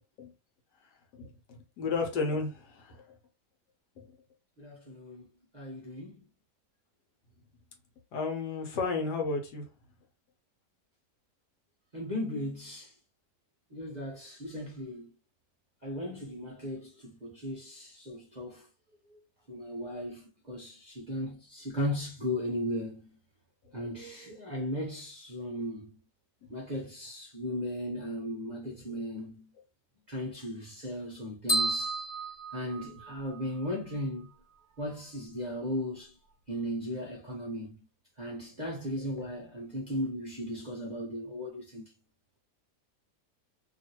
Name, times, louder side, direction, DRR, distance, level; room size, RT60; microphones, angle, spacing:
voice 1, 1.1-3.0 8.1-9.7 23.7-23.9 39.2-39.3, left 4 dB, 80° left, 1.5 m, -33 dB
voice 2, 4.6-5.3 5.5-6.2 11.9-12.9 13.7-15.1 15.8-18.7 19.1-19.2 19.5-23.1 23.7-25.9 26.5-29.5 30.1-32.0 32.5-34.3 34.8-36.2 36.5-37.7 38.2-41.8, equal, 40° right, 0.6 m, -36 dB
sound 1, 31.5-33.4, right 2 dB, 50° left, 1.3 m, -31 dB
3.0 x 2.6 x 2.9 m
omnidirectional pair, 1.8 m